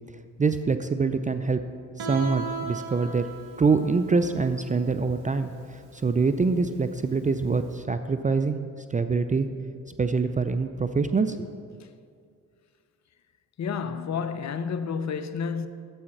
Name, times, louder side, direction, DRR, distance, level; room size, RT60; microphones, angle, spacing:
voice 1, 0.4-1.6 2.0-3.3 3.6-8.6 8.9-9.5 10.0-11.5, right 4 dB, 20° right, 0.4 m, -25 dB
Guitar, 2.0-7.7, right 4 dB, 75° right, 1.3 m, -38 dB
voice 2, 13.6-15.7, left 6 dB, 45° left, 0.7 m, -30 dB
9.9 x 7.4 x 4.6 m
supercardioid pair, 50°, 38 cm